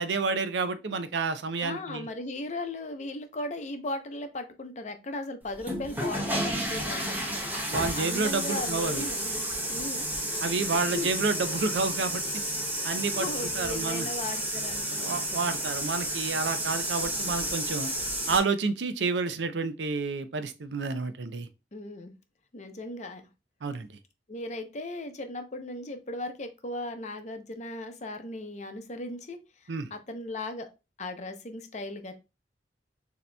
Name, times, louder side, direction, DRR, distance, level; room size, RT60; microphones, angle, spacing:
voice 1, 0.0-2.1 7.7-9.0 10.4-12.2 12.8-13.3 13.5-14.1 15.0-17.9 18.3-21.5 23.6-23.9 29.7-29.9, right 4 dB, 85° right, 0.5 m, -29 dB
voice 2, 1.6-7.4 8.0-9.3 9.7-10.1 10.9-11.1 13.1-15.2 21.7-22.1 22.5-23.3 24.3-30.7 31.0-32.1, left 2 dB, 40° left, 0.6 m, -37 dB
sound 1, 5.5-18.4, right 1 dB, 10° right, 0.9 m, -31 dB
6.5 x 2.8 x 2.2 m
head